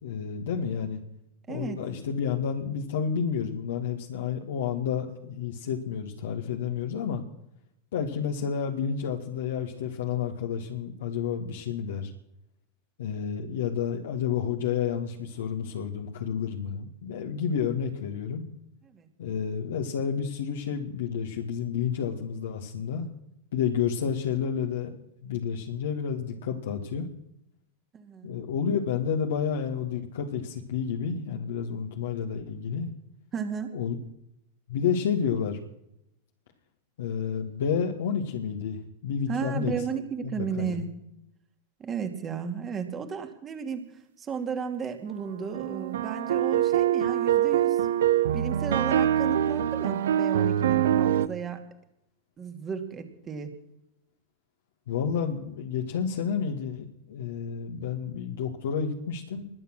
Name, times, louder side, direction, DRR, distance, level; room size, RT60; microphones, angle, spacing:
voice 1, 0.0-1.0 1.5-7.2 7.9-12.1 13.0-18.5 19.2-23.1 23.5-27.1 28.2-32.9 33.7-34.0 34.7-35.6 37.0-39.7 40.2-40.8 54.9-59.5, left 7 dB, 60° left, 1 dB, 2.1 m, -30 dB
voice 2, 1.5-1.8 18.9-19.1 27.9-28.3 33.3-33.7 39.3-40.9 41.8-43.9 44.2-47.9 48.3-51.6 52.4-53.6, right 6 dB, 25° right, 5 dB, 2.6 m, -34 dB
sound 1, 45.5-51.3, right 11 dB, 60° right, 0.8 m, -24 dB
21.0 x 9.4 x 6.3 m, 0.82 s
figure-of-eight pair, 90°, 0 cm